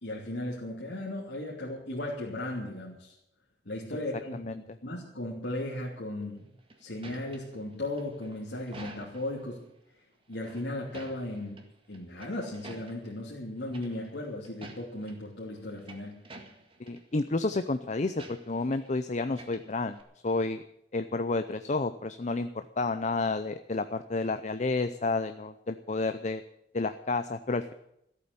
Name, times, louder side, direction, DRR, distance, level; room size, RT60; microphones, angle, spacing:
voice 1, 0.0-3.1 3.6-9.7 10.3-16.2, left 1 dB, 75° left, -5 dB, 3.0 m, -36 dB
sound 1, 6.4-9.4 10.3-11.6 11.9-13.2 13.7-14.2 14.4-15.2 15.6-17.0 17.3-17.6 18.2-18.9 19.2-20.0, right 2 dB, 30° right, 1.9 m, -49 dB
voice 2, 16.8-20.0 20.2-20.6 20.9-26.4 26.7-27.7, left 3 dB, 40° left, 10 dB, 0.6 m, -30 dB
14.5 x 8.5 x 9.6 m, 0.79 s
head